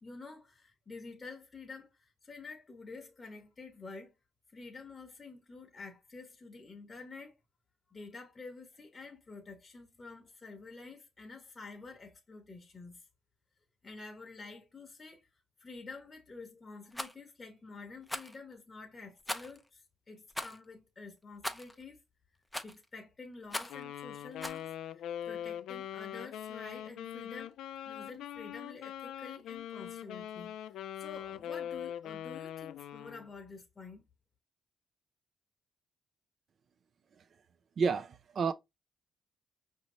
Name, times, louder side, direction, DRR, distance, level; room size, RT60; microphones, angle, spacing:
voice 1, 0.0-4.1 4.5-7.4 7.9-13.1 13.8-15.3 15.6-22.0 22.6-24.7 25.3-27.5 27.9-34.0, left 4 dB, 25° left, 0.9 m, -49 dB
Rattle, 16.9-17.1 18.1-18.4 19.3-19.6 20.3-20.6 21.4-21.7 22.5-22.8 23.5-23.8 24.4-24.6, left 1 dB, 5° left, 0.5 m, -39 dB
Wind instrument woodwind instrument, 23.7-33.3, left 10 dB, 85° left, 0.3 m, -42 dB
voice 2, 37.8-38.5, right 5 dB, 50° right, 0.5 m, -30 dB
5.1 x 2.7 x 3.0 m
cardioid pair, 90°, 0 cm